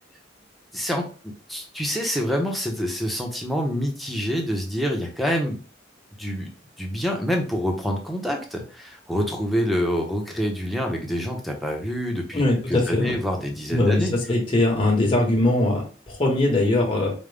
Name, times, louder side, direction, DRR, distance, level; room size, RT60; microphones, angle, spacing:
voice 1, 0.7-5.6 6.2-6.5 6.8-14.1, equal, ahead, 0 dB, 0.8 m, -27 dB
voice 2, 12.3-13.2 13.7-17.1, left 2 dB, 30° left, -2 dB, 1.2 m, -21 dB
5.1 x 2.2 x 3.3 m, 0.38 s
head